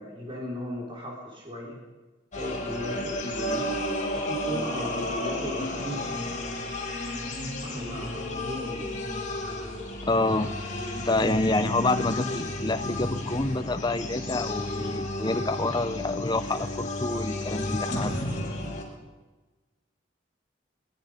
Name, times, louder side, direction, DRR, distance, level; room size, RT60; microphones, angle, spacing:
voice 1, 0.0-1.8 2.3-3.6 4.1-6.1 7.6-9.0, left 1 dB, 30° right, -3 dB, 4.8 m, -36 dB
sound 1, 2.3-18.8, left 1 dB, 45° left, 5.5 m, -32 dB
voice 2, 10.1-10.5 11.0-18.5, left 2 dB, 25° left, 9 dB, 1.0 m, -27 dB
22.5 x 21.0 x 5.4 m, 1.2 s
head